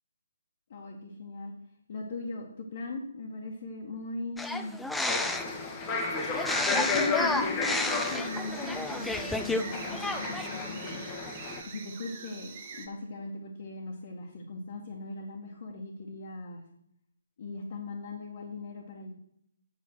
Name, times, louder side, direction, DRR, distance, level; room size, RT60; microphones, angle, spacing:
voice 1, 0.7-1.5 1.9-4.8 6.7-11.0 11.6-16.6 17.4-19.1, left 3 dB, 45° left, -1 dB, 2.0 m, -39 dB
sound 1, 4.4-5.6 6.3-9.6 9.9-10.5, left 2 dB, 5° left, 0.6 m, -31 dB
sound 2, 5.1-11.6, left 3 dB, 20° left, 1.7 m, -33 dB
sound 3, 7.8-12.9, right 6 dB, 35° right, 1.8 m, -45 dB
8.9 x 8.2 x 6.4 m, 0.73 s
figure-of-eight pair, 140°, 0 cm